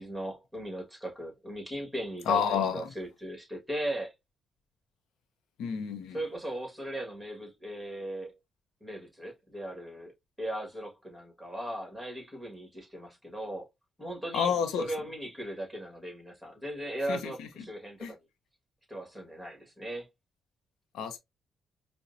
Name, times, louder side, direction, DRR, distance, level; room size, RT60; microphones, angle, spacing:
voice 1, 0.0-4.1 6.1-8.3 8.8-13.7 14.0-18.2 18.9-20.1, right 1 dB, 5° right, 1.6 m, -38 dB
voice 2, 2.3-2.9 5.6-6.2 14.3-14.8 17.1-17.5 18.0-18.1 20.9-21.2, left 7 dB, 85° left, 0.6 m, -29 dB
4.8 x 2.1 x 2.5 m
cardioid pair, 90°, 0 cm